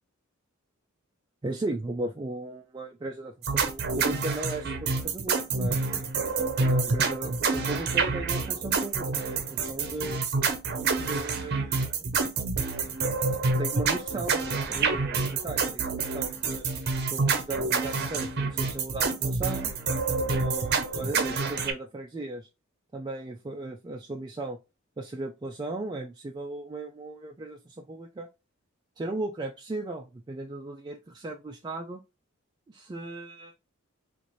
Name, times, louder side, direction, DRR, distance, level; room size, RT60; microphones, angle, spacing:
voice 1, 1.4-5.8 6.6-10.2 11.0-12.0 13.6-16.7 17.1-19.7 20.3-22.5 22.9-24.6 25.0-28.3 29.0-32.0 32.7-33.5, right 2 dB, 20° right, 2 dB, 0.3 m, -36 dB
sound 1, 3.4-21.7, right 4 dB, 50° right, 0.6 m, -28 dB
4.0 x 2.5 x 3.0 m, 0.26 s
head